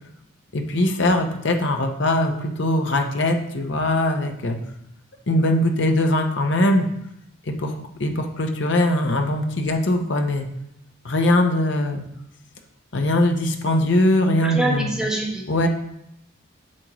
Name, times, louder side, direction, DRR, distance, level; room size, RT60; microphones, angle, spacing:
voice 1, 0.5-4.6 5.3-6.9 7.5-10.5 11.0-12.0 12.9-14.9 15.5-15.7, left 1 dB, 60° left, 4 dB, 0.8 m, -21 dB
voice 2, 14.4-15.4, right 2 dB, 5° right, -4 dB, 1.4 m, -25 dB
8.6 x 6.2 x 3.1 m, 0.80 s
head